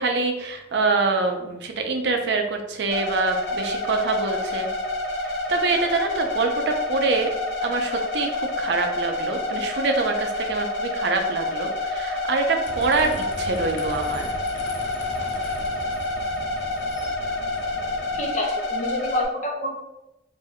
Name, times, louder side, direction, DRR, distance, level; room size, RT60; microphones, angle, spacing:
voice 1, 0.0-4.7 5.2-7.3 7.6-14.3, right 3 dB, 70° right, 4 dB, 0.4 m, -25 dB
sound 1, 2.9-19.2, left 2 dB, 70° left, 1.2 m, -28 dB
sound 2, 12.6-18.2, left 1 dB, 85° left, 0.5 m, -38 dB
voice 2, 18.1-19.8, left 1 dB, 40° left, 0 dB, 0.5 m, -28 dB
2.5 x 2.2 x 3.5 m, 0.91 s
head